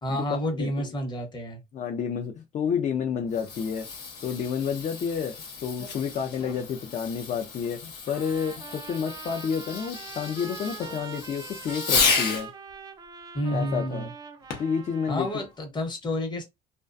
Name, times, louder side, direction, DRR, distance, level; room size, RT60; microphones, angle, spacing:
voice 1, 0.0-1.6 13.3-14.1 15.1-16.4, equal, 25° left, 0.9 m, -29 dB
voice 2, 0.5-0.9 1.7-3.9 4.2-5.3 5.6-12.5 13.5-14.1 14.6-15.4, left 7 dB, 45° left, 0.4 m, -30 dB
Fireworks, 3.1-12.5 14.5-14.8 15.5-15.6, left 5 dB, 75° left, 0.8 m, -32 dB
Trumpet, 8.1-15.5, right 6 dB, 25° right, 0.4 m, -43 dB
2.3 x 2.2 x 2.5 m
cardioid pair, 110°, 17 cm